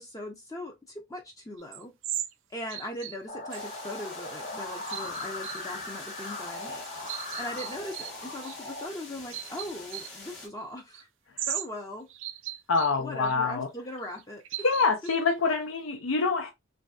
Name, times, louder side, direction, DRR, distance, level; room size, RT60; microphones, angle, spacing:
voice 1, 0.0-1.9 2.5-6.8 7.4-11.1 11.5-12.1 13.0-14.4, left 1 dB, 15° left, 0.4 m, -39 dB
sound 1, 1.6-2.3 2.7-3.2 3.5-3.6 4.9-5.6 6.3-6.4 6.8-8.1 8.4-8.6 9.3-10.1 10.9-11.0 11.4-11.7 12.1-13.0 13.2-13.3 14.0-15.6, right 12 dB, 65° right, 0.4 m, -37 dB
sound 2, 3.3-8.9, left 2 dB, 35° left, 0.8 m, -39 dB
sound 3, 3.5-10.5, left 3 dB, 60° left, 1.1 m, -45 dB
voice 2, 12.7-13.7 14.6-16.5, left 4 dB, 75° left, 0.4 m, -26 dB
3.1 x 2.6 x 2.2 m
head